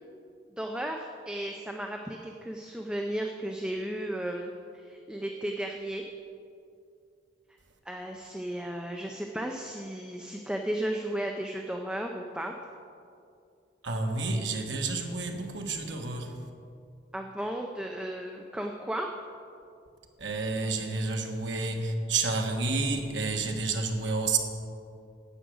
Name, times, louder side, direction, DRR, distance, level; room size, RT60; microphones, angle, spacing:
voice 1, 0.6-6.0 7.9-12.5 17.1-19.1, right 1 dB, 5° right, 0.5 m, -34 dB
voice 2, 13.8-16.3 20.2-24.4, right 3 dB, 75° right, 1.2 m, -30 dB
9.9 x 8.1 x 6.3 m
head